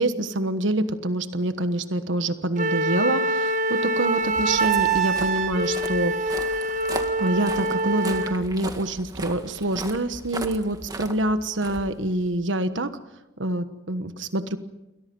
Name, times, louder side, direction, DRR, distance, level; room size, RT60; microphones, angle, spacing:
voice 1, 0.0-6.9 7.2-12.9 13.4-14.6, right 1 dB, 85° right, 10 dB, 1.3 m, -26 dB
Wind instrument woodwind instrument, 2.6-8.4, right 2 dB, 40° right, 1.3 m, -25 dB
Walk footsteps, 4.2-12.5, right 2 dB, 20° right, 1.8 m, -38 dB
28.5 x 23.0 x 5.4 m, 0.92 s
head